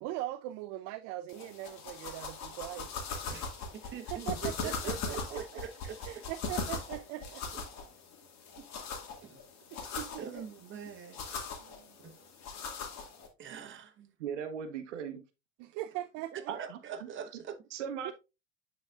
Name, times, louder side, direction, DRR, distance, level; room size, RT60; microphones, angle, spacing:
voice 1, 0.0-2.9 4.1-5.6 6.0-7.4 9.7-10.2 11.6-12.0 13.6-13.7 15.6-16.5 18.0-18.1, right 15 dB, 50° right, 0.5 m, -40 dB
sound 1, 1.3-13.3, left 4 dB, 50° left, 1.9 m, -40 dB
voice 2, 3.3-6.2 7.5-7.6 9.2-9.4 10.2-11.2 12.0-12.2 13.4-14.1 16.3-17.6, right 7 dB, 35° right, 1.1 m, -43 dB
voice 3, 14.2-15.2 16.5-16.8 17.7-18.1, right 7 dB, 80° right, 0.9 m, -38 dB
9.8 x 4.1 x 2.4 m
hypercardioid pair, 80°, 36 cm